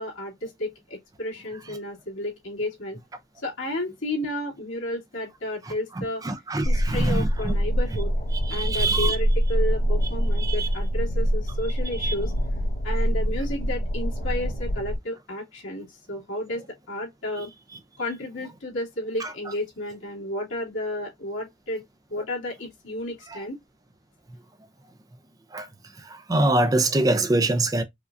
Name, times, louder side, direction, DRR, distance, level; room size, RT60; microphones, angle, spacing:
voice 1, 0.0-3.0 3.4-6.2 6.6-8.1 8.5-12.3 12.8-16.6 16.9-17.5 18.0-21.8 22.1-23.6, left 1 dB, 80° left, 2.0 m, -32 dB
voice 2, 5.6-7.5 7.9-8.0 8.3-9.2 10.4-10.7 12.0-12.1 19.2-19.3 23.3-23.4 25.5-25.7 26.0-27.8, right 2 dB, 20° right, 0.3 m, -25 dB
sound 1, 6.6-15.0, equal, 50° left, 1.4 m, -25 dB
4.8 x 2.2 x 2.5 m
head